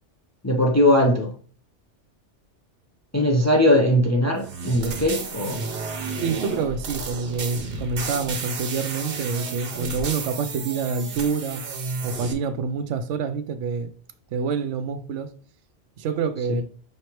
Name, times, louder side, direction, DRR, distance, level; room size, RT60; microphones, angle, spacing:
voice 1, 0.4-1.3 3.1-5.6 16.5-16.6, left 1 dB, 20° left, 0.4 m, -20 dB
sound 1, 4.4-12.3, right 4 dB, 55° right, 0.9 m, -32 dB
voice 2, 6.0-11.6 12.0-13.9 14.3-15.3 16.0-16.6, right 5 dB, 85° right, 0.9 m, -27 dB
5.4 x 3.2 x 2.9 m
omnidirectional pair, 1.2 m